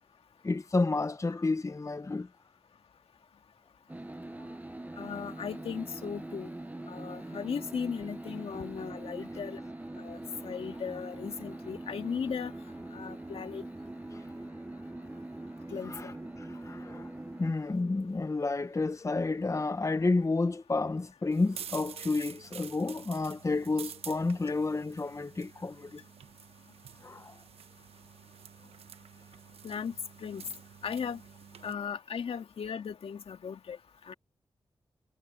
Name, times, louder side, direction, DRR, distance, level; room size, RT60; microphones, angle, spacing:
voice 1, 0.4-2.3 4.5-4.6 14.1-14.2 15.8-17.1 17.4-26.0 27.0-27.4, left 3 dB, 30° left, 0.8 m, -31 dB
sound 1, 3.9-17.5, right 1 dB, 15° right, 0.8 m, -43 dB
voice 2, 5.0-6.5 6.9-9.6 10.0-12.5 12.9-13.6 15.7-16.1 29.6-29.9 30.2-30.4 30.8-31.2 31.6-33.8 34.1-34.2, left 6 dB, 75° left, 2.1 m, -37 dB
sound 2, 21.3-31.7, right 8 dB, 85° right, 1.1 m, -48 dB
cardioid pair, 45°, 10 cm